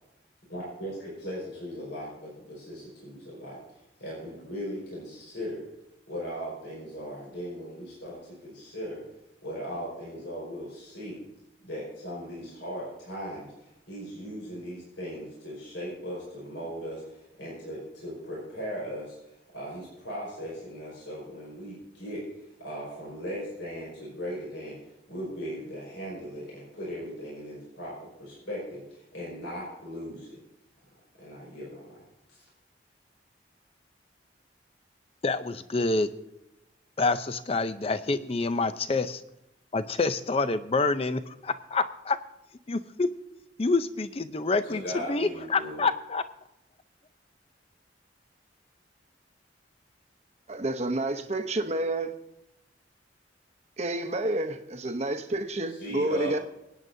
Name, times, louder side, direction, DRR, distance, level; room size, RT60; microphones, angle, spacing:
voice 1, 0.5-3.6 4.0-5.7 6.1-9.0 9.4-11.2 11.6-24.8 25.1-30.4 31.2-32.0 32.3-32.4 44.6-45.9 55.8-56.4, equal, 80° left, -6 dB, 5.2 m, -38 dB
voice 2, 35.2-36.1 37.0-39.2 39.7-42.2 42.7-43.1 43.6-46.2, left 3 dB, 30° left, 12 dB, 0.5 m, -27 dB
voice 3, 50.5-52.1 53.8-56.4, right 1 dB, 35° right, 7 dB, 0.8 m, -29 dB
27.0 x 9.1 x 2.7 m, 0.90 s
head